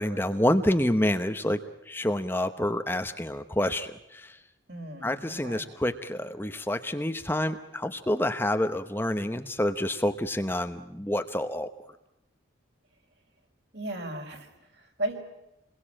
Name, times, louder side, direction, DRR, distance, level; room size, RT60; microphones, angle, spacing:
voice 1, 0.0-4.4 5.0-11.7, left 1 dB, 10° left, 8 dB, 0.9 m, -28 dB
voice 2, 4.7-5.6 13.7-14.5 14.7-15.3, right 1 dB, 60° right, 3 dB, 4.9 m, -35 dB
28.5 x 21.5 x 8.8 m, 0.91 s
head